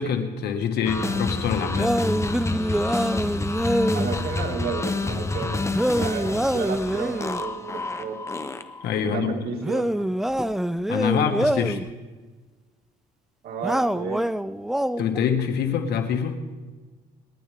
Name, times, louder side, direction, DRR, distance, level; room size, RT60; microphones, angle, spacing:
voice 1, 0.0-1.9 8.8-9.4 10.9-11.8 15.0-16.4, left 7 dB, 70° left, 5 dB, 1.9 m, -25 dB
sound 1, 0.9-8.9, left 3 dB, 15° left, 0.9 m, -29 dB
sound 2, 1.8-4.1 5.7-7.4 9.6-11.9 13.6-15.2, right 1 dB, ahead, 0.4 m, -25 dB
voice 2, 3.9-5.6 5.9-8.2 9.0-10.1 13.4-14.2, right 5 dB, 65° right, 1 dB, 2.4 m, -32 dB
28.0 x 10.5 x 3.7 m, 1.3 s
cardioid pair, 110°, 17 cm